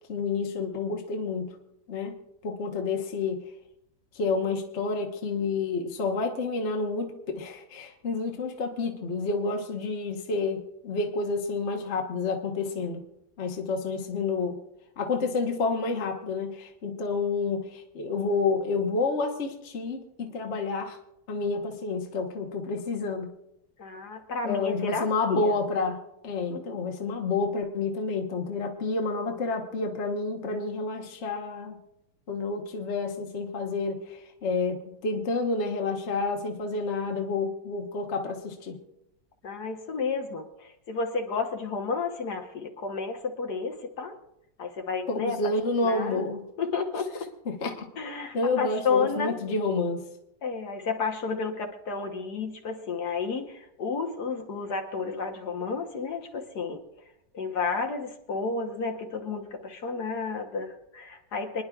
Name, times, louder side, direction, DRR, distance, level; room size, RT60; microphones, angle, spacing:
voice 1, 0.1-1.5 1.9-2.2 2.4-3.4 4.1-13.0 13.4-14.6 15.0-21.0 21.3-23.3 24.4-31.8 32.3-38.8 45.1-46.4 47.5-47.8 48.3-50.0, left 3 dB, 45° left, 3 dB, 1.3 m, -29 dB
voice 2, 23.8-25.6 26.5-26.8 39.4-44.1 44.6-45.4 45.8-46.2 46.6-47.3 48.0-49.4 50.4-56.8 57.3-61.6, left 4 dB, 60° left, 3 dB, 1.6 m, -31 dB
27.5 x 10.5 x 2.4 m, 0.83 s
omnidirectional pair, 2.0 m